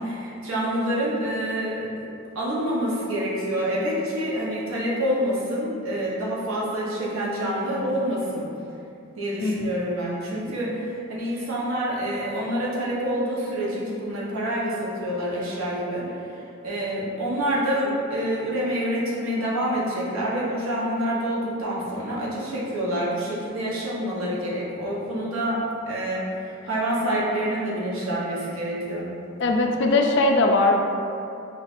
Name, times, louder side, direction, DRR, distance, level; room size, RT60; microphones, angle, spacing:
voice 1, 0.0-2.1 2.3-8.5 9.2-16.4 16.6-25.6 25.9-29.0, equal, 90° right, -6 dB, 0.9 m, -27 dB
voice 2, 29.4-30.7, left 2 dB, 60° left, 2 dB, 0.4 m, -20 dB
5.5 x 2.4 x 2.5 m, 2.6 s
head